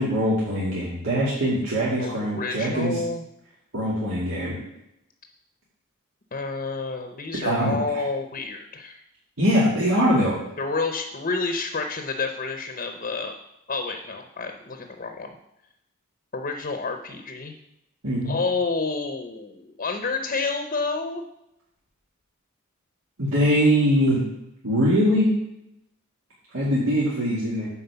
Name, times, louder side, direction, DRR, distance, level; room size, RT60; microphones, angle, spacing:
voice 1, 0.0-3.0 3.7-4.6 7.4-8.0 9.4-10.4 18.0-18.3 23.2-24.2 24.6-25.3 26.5-27.7, equal, 85° right, -8 dB, 2.4 m, -22 dB
voice 2, 2.0-3.2 6.3-9.0 10.6-13.4 13.7-15.3 16.3-17.6 18.3-21.2, left 4 dB, 40° left, 5 dB, 0.7 m, -29 dB
9.7 x 4.3 x 6.9 m, 0.85 s
head